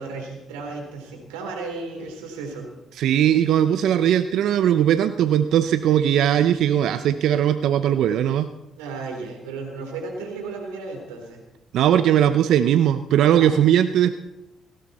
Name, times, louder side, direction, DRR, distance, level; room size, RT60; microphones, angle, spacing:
voice 1, 0.0-2.7 8.8-11.4 13.3-13.6, right 3 dB, 90° right, 2 dB, 3.5 m, -34 dB
voice 2, 3.0-8.5 11.7-14.1, right 10 dB, 75° right, 11 dB, 0.6 m, -19 dB
17.5 x 17.0 x 4.3 m, 0.94 s
hypercardioid pair, 50°, 0 cm